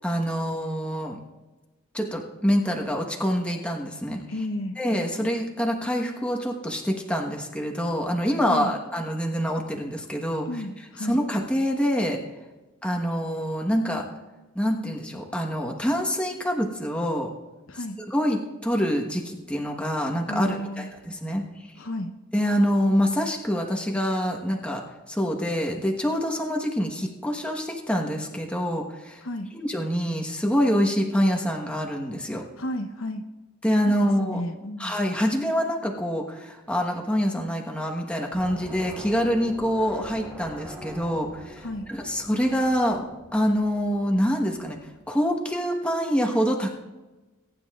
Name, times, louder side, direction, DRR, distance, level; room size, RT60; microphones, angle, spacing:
voice 1, 0.0-1.2 1.9-4.2 4.8-10.5 11.0-12.2 12.8-14.0 14.5-17.3 18.1-21.4 22.3-24.8 25.1-29.2 29.5-32.4 33.6-34.4 34.8-44.8 45.1-46.7, equal, 5° left, 1 dB, 1.2 m, -26 dB
voice 2, 4.3-4.8 8.5-8.7 10.5-11.2 17.7-18.0 20.3-20.9 21.8-22.1 29.2-29.5 32.6-33.2 33.9-35.0 41.6-41.9, left 1 dB, 70° left, 6 dB, 0.9 m, -32 dB
sound 1, 38.3-45.1, right 1 dB, 15° right, 3.2 m, -44 dB
22.0 x 9.8 x 2.4 m, 1.2 s
head